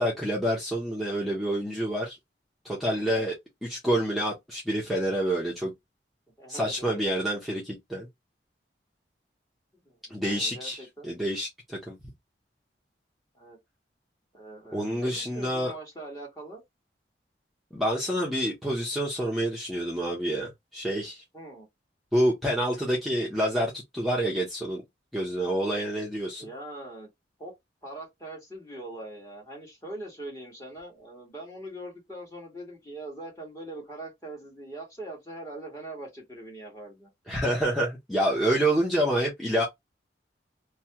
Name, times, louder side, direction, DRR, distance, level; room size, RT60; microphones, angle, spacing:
voice 1, 0.0-2.2 2.6-3.3 3.6-5.7 6.5-8.1 10.1-12.0 14.7-15.7 17.7-21.2 22.1-24.8 25.1-26.5 37.3-39.6, right 1 dB, ahead, 0.8 m, -28 dB
voice 2, 2.9-3.3 6.4-7.0 9.9-11.1 13.3-13.6 14.3-16.6 21.3-21.7 26.4-27.1 27.4-27.5 27.8-37.1, right 1 dB, 20° left, 1.7 m, -42 dB
3.1 x 2.3 x 2.9 m
head